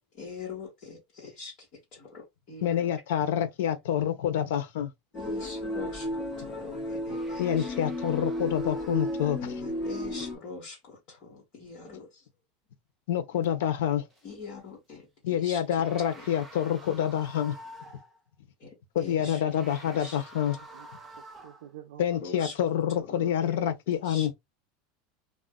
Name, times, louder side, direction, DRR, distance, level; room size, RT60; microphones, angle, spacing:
voice 1, 0.1-2.9 5.1-7.8 9.4-12.3 14.2-16.7 18.6-20.2 22.2-24.3, left 4 dB, 35° left, 1.3 m, -44 dB
voice 2, 2.6-4.9 7.4-9.4 13.1-14.1 15.2-17.5 18.9-20.6 22.0-24.3, left 10 dB, 75° left, 0.7 m, -27 dB
sound 1, 5.1-10.4, left 1 dB, 10° left, 1.1 m, -33 dB
sound 2, 7.1-9.9 14.1-14.2 15.5-18.2 19.3-21.8, right 1 dB, 10° right, 0.5 m, -49 dB
voice 3, 19.1-19.4 20.7-20.9 21.4-22.2, right 11 dB, 70° right, 0.5 m, -48 dB
2.4 x 2.1 x 3.6 m
supercardioid pair, 180°, 0 cm